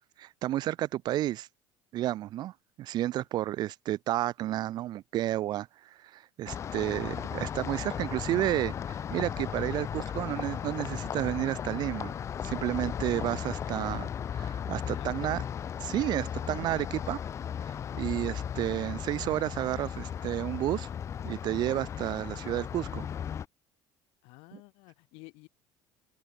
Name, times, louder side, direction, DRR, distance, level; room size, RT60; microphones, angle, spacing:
voice 1, 0.2-1.5 1.9-12.1 12.4-15.4 15.8-17.2 17.9-20.9 21.2-23.1 24.5-24.6, right 14 dB, 45° right, 1.0 m, -31 dB
sound 1, 6.5-23.5, left 8 dB, 30° left, 1.8 m, -36 dB
voice 2, 14.9-15.3 24.2-25.5, left 27 dB, 70° left, 5.1 m, -50 dB
cardioid pair, 160°, 10 cm